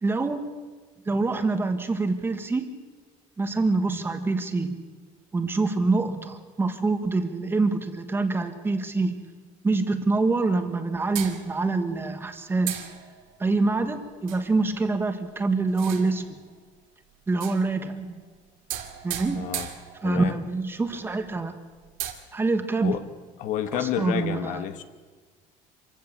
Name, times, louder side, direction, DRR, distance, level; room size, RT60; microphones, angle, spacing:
voice 1, 0.0-0.5 1.0-2.7 3.4-4.8 5.3-9.2 9.6-12.9 13.4-16.4 17.3-18.2 19.0-19.5 20.0-21.5 22.3-23.0 23.7-24.6, right 3 dB, 15° right, 8 dB, 1.4 m, -25 dB
sound 1, 11.2-11.9 12.7-13.4 14.3-14.6 15.7-16.4 17.3-18.0 18.7-20.4 20.9-21.0 21.2-21.3 21.8-22.1, right 12 dB, 85° right, 2.3 m, -36 dB
voice 2, 19.3-19.7 20.0-20.3 22.8-23.0 23.4-24.8, left 11 dB, 65° left, 10 dB, 1.3 m, -29 dB
25.5 x 16.0 x 7.3 m, 1.5 s
cardioid pair, 165°, 14 cm